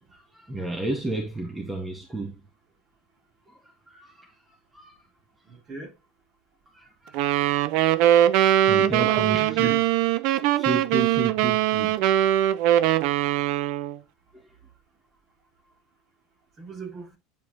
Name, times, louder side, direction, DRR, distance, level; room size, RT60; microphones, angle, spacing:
voice 1, 0.1-2.4 3.5-5.0 5.5-5.6 6.7-7.3 8.4-9.9 10.5-12.4 14.3-14.5, right 2 dB, 15° right, 1.8 m, -33 dB
voice 2, 5.5-5.9 8.9-9.8 16.6-17.2, right 4 dB, 35° right, 2.8 m, -36 dB
sound 1, 7.1-14.0, right 12 dB, 65° right, 0.5 m, -21 dB
9.3 x 4.7 x 2.9 m
hypercardioid pair, 85°, 0 cm